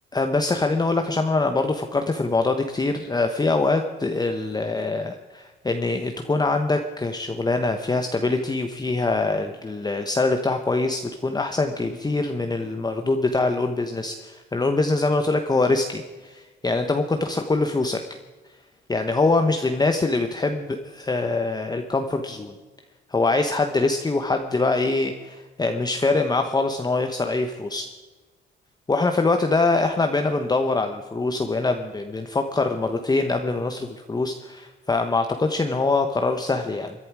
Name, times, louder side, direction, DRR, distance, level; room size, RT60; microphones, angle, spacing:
voice 1, 0.1-18.0 18.9-22.5 23.1-27.9 28.9-36.9, left 3 dB, 20° left, 5 dB, 1.1 m, -24 dB
22.0 x 11.0 x 4.8 m, 1.3 s
cardioid pair, 90°, 20 cm